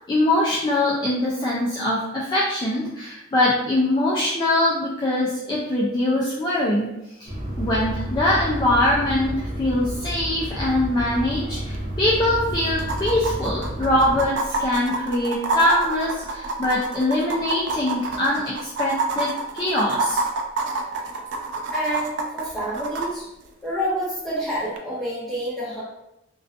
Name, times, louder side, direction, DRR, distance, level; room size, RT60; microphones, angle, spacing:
voice 1, 0.1-6.9 7.2-7.3 7.6-20.2, left 1 dB, 20° left, -6 dB, 0.3 m, -23 dB
sound 1, 7.3-14.3, equal, 45° right, 0.8 m, -30 dB
sound 2, 11.7-11.8 12.1-12.2 12.8-23.1 24.8-24.9, right 3 dB, 60° right, 0.3 m, -27 dB
voice 2, 21.7-23.3 23.6-25.8, equal, ahead, -11 dB, 1.2 m, -28 dB
2.4 x 2.3 x 2.4 m, 0.88 s
head